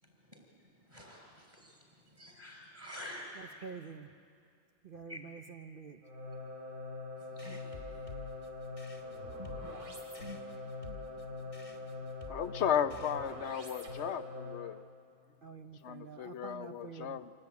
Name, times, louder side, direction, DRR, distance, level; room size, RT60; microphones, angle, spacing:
voice 1, 0.0-3.7 5.1-5.2 7.2-12.4, left 1 dB, 20° right, 0 dB, 6.4 m, -51 dB
voice 2, 3.6-4.1 4.8-6.0 15.4-17.2, right 6 dB, 50° right, 7 dB, 0.6 m, -47 dB
sound 1, 6.0-14.8, left 2 dB, 75° right, 3.0 m, -43 dB
sound 2, 7.4-13.6, left 3 dB, 30° left, 2.0 m, -53 dB
voice 3, 12.3-14.8 15.8-17.3, left 9 dB, 55° left, 12 dB, 0.9 m, -35 dB
26.0 x 17.5 x 9.5 m, 2.3 s
omnidirectional pair, 1.6 m